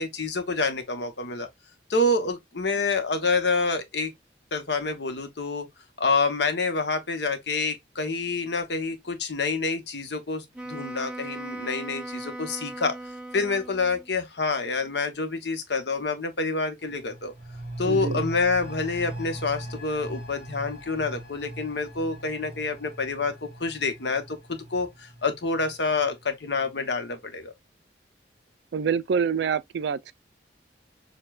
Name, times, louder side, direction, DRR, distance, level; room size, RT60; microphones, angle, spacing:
voice 1, 0.0-1.5 1.9-4.1 4.5-5.7 6.0-13.0 13.3-17.3 17.8-27.5, left 3 dB, 70° left, 0.9 m, -27 dB
Wind instrument woodwind instrument, 10.5-14.1, right 1 dB, 5° right, 0.7 m, -38 dB
sound 1, 16.8-26.2 26.5-26.6, right 1 dB, 45° left, 1.3 m, -39 dB
voice 2, 17.8-18.2 28.7-30.1, right 6 dB, 70° right, 0.3 m, -26 dB
6.5 x 2.2 x 2.3 m
head